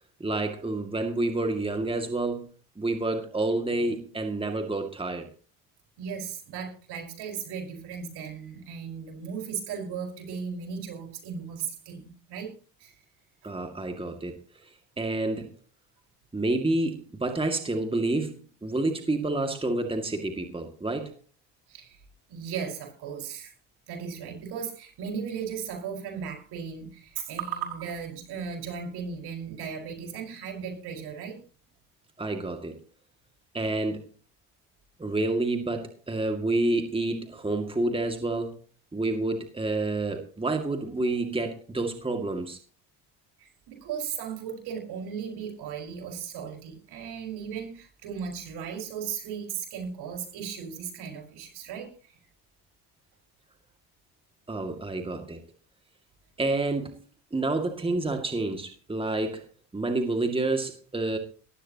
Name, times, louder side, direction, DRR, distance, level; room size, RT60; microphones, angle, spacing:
voice 1, 0.2-2.5 2.8-5.3 13.4-15.5 16.3-21.1 32.2-32.8 33.5-34.0 35.0-38.6 38.9-42.6 54.5-55.4 56.4-57.0 57.3-59.4 59.7-61.2, right 2 dB, 15° right, 5 dB, 2.2 m, -29 dB
voice 2, 6.0-12.5 12.8-12.9 21.7-22.0 22.3-23.5 23.9-31.4 43.4-52.1, right 7 dB, 70° right, 3 dB, 5.4 m, -36 dB
19.5 x 15.0 x 2.9 m, 0.37 s
supercardioid pair, 85°, 40 cm